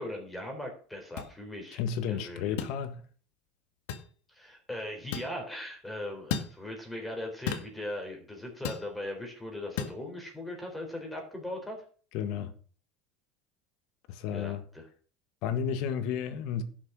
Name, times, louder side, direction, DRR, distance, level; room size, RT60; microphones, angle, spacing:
voice 1, 0.0-1.8 2.1-2.6 4.3-11.8 14.3-14.9, left 1 dB, 5° left, 3.8 m, -39 dB
sound 1, 1.2-1.3 2.6-2.8 3.9-4.1 5.1-5.3 6.3-6.5 7.5-7.7 8.6-8.9 9.8-10.0, left 7 dB, 80° left, 1.6 m, -33 dB
voice 2, 1.7-3.0 12.1-12.5 14.1-14.6 15.4-16.6, left 8 dB, 65° left, 1.6 m, -32 dB
11.5 x 6.5 x 6.2 m
supercardioid pair, 130°, 0 cm